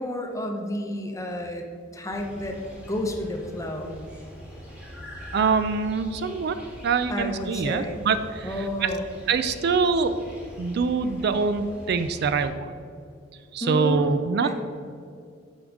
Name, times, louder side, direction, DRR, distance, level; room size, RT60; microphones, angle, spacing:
voice 1, 0.0-1.7 1.9-2.6 2.9-4.0 7.1-8.0 8.4-9.1 13.6-14.5, left 1 dB, 15° left, 3 dB, 0.8 m, -31 dB
sound 1, 2.1-12.5, equal, 5° right, 1.5 m, -43 dB
voice 2, 5.3-6.6 6.8-8.5 8.8-8.9 9.3-10.2 10.6-12.7 13.5-14.5, right 5 dB, 55° right, 11 dB, 0.4 m, -24 dB
8.6 x 6.2 x 3.6 m, 2.3 s
head